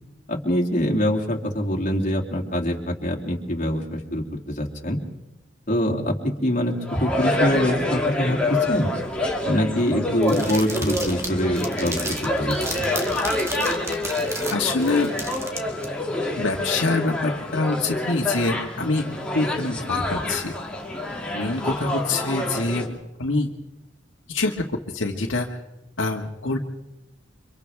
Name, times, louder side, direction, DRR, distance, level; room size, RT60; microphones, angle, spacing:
voice 1, 0.3-5.0 5.7-8.9 9.4-12.9, equal, 40° left, 0 dB, 2.8 m, -24 dB
sound 1, 6.8-22.9, left 2 dB, 5° left, 2.8 m, -27 dB
sound 2, 10.2-15.9, right 2 dB, 15° right, 1.8 m, -33 dB
voice 2, 14.5-15.1 16.4-19.0 19.3-20.5 21.3-22.9 23.2-23.5 24.3-24.5 24.9-25.6 26.0-26.6, left 3 dB, 85° left, 0 dB, 1.9 m, -25 dB
30.0 x 25.5 x 3.6 m, 0.94 s
head